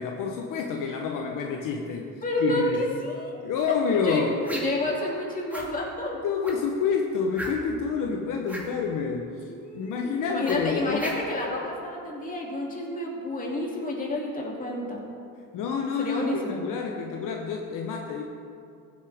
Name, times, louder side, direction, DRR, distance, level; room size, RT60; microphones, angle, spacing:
voice 1, 0.0-2.1 2.4-2.8 3.4-4.4 6.2-11.0 15.5-18.2, left 5 dB, 65° left, 2 dB, 1.0 m, -28 dB
voice 2, 2.2-3.4 3.9-6.1 9.5-15.0 16.0-16.6, left 1 dB, 25° left, -3 dB, 2.7 m, -30 dB
sound 1, 4.4-4.9 5.5-5.7 6.4-6.7 7.3-7.8 8.4-8.7 10.4-11.4, equal, 5° right, 2.1 m, -36 dB
15.0 x 8.4 x 3.5 m, 2.5 s
cardioid pair, 105°, 35 cm